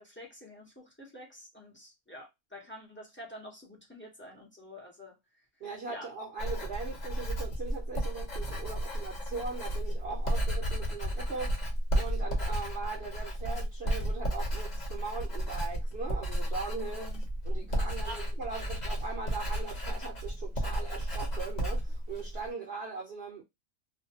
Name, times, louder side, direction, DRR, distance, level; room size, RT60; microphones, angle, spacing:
voice 1, 0.0-5.1 5.9-6.1 17.0-17.2 17.5-17.7 18.1-18.4 22.6-22.7, equal, 10° left, 0.6 m, -48 dB
voice 2, 5.6-11.6 11.9-17.1 17.4-23.4, right 4 dB, 50° right, 0.8 m, -40 dB
Writing, 6.4-22.5, right 1 dB, 35° left, 0.8 m, -33 dB
2.6 x 2.2 x 2.7 m
omnidirectional pair, 1.6 m